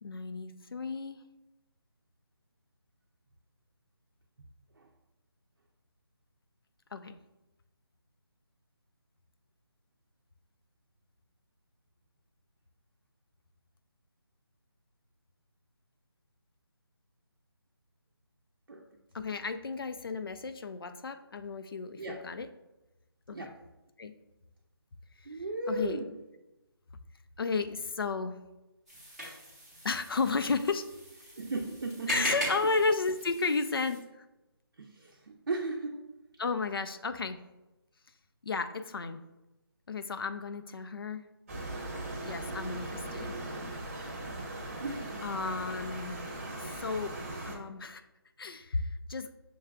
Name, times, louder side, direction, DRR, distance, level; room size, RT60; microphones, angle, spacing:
voice 1, 0.0-1.2 6.9-7.2 19.1-22.5 23.3-23.5 24.0-24.1 25.3-26.0 27.4-28.4 29.8-30.9 32.1-34.3 36.4-37.4 38.4-39.2 39.9-41.2 42.2-43.4 45.2-46.2 46.6-47.1 47.5-48.0 48.4-49.3, left 4 dB, 60° left, 9 dB, 0.4 m, -33 dB
voice 2, 25.3-26.1 31.4-32.3 34.8-36.0 44.8-45.2, right 2 dB, 60° right, -1 dB, 0.5 m, -36 dB
sound 1, 28.9-34.0, equal, ahead, 0.7 m, -40 dB
sound 2, 41.5-47.6, right 2 dB, 30° right, 0.8 m, -39 dB
6.7 x 2.3 x 2.3 m, 1.0 s
figure-of-eight pair, 170°, 13 cm